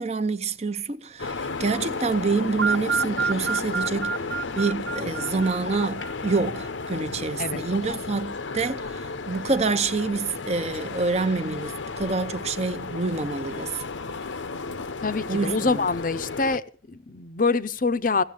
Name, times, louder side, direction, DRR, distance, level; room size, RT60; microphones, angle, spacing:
voice 1, 0.0-4.2 4.5-9.0 9.3-13.7 15.3-15.8, right 4 dB, 35° right, 0.7 m, -27 dB
sound 1, 1.2-16.6, left 4 dB, 80° left, 0.8 m, -33 dB
sound 2, 2.6-6.6, right 6 dB, 90° right, 0.7 m, -29 dB
voice 2, 15.0-16.6 16.9-18.2, left 4 dB, 45° left, 0.6 m, -25 dB
16.0 x 7.3 x 8.6 m
head